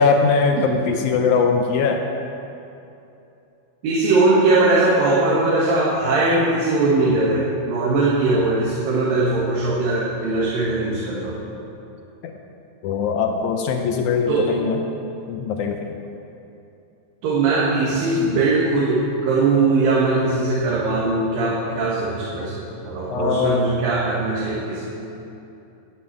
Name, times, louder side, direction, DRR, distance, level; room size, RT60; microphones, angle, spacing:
voice 1, 0.0-2.1 12.2-12.3 12.8-14.8 15.3-16.0 23.1-23.6, left 5 dB, 80° left, 3 dB, 1.8 m, -21 dB
voice 2, 3.8-11.4 14.3-14.5 17.2-24.8, right 3 dB, 80° right, -6 dB, 3.1 m, -20 dB
12.5 x 5.7 x 8.7 m, 2.8 s
omnidirectional pair, 4.0 m